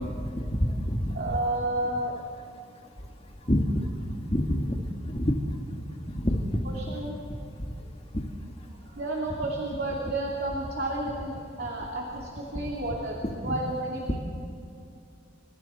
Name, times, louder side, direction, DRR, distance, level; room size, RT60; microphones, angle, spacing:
voice 1, 0.0-1.3 3.5-3.7 4.3-4.8 5.1-5.3 6.2-6.4 8.1-8.2 13.4-13.5, equal, 30° left, 2 dB, 2.2 m, -26 dB
voice 2, 1.1-2.2 6.6-7.1 8.9-14.2, right 1 dB, 50° right, -2 dB, 2.8 m, -31 dB
28.5 x 26.0 x 4.5 m, 2.5 s
head